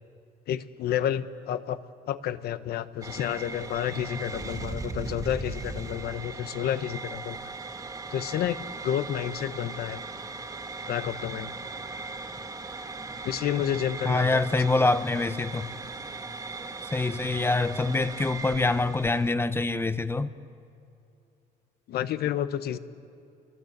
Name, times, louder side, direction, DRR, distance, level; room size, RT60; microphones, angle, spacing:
voice 1, 0.5-1.8 2.1-7.4 8.1-10.0 10.9-11.5 13.2-14.4 21.9-22.8, left 10 dB, 70° left, 1.1 m, -30 dB
sound 1, 3.0-19.3, right 3 dB, 20° right, 1.5 m, -38 dB
voice 2, 14.0-15.7 16.8-20.3, left 3 dB, 15° left, 0.8 m, -25 dB
29.0 x 23.0 x 8.1 m
cardioid pair, 110°, 17 cm